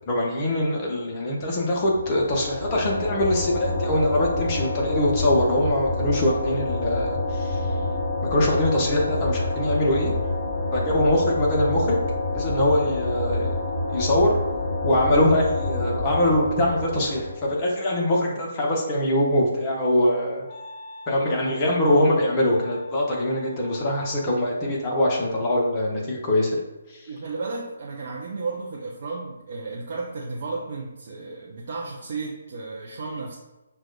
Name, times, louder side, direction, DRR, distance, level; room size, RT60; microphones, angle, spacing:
voice 1, 0.1-7.7 8.2-10.1 10.7-12.0 12.3-13.6 13.9-14.3 14.8-20.4 21.1-26.6 26.9-27.0, left 1 dB, 25° left, -2 dB, 0.8 m, -23 dB
sound 1, 1.8-17.6, left 2 dB, 10° right, 1.4 m, -28 dB
Wind instrument woodwind instrument, 19.5-24.6, left 3 dB, 40° left, 1.2 m, -45 dB
voice 2, 27.1-33.4, right 3 dB, 45° right, -3 dB, 0.5 m, -33 dB
6.0 x 2.3 x 2.3 m, 1.0 s
figure-of-eight pair, 140°, 0 cm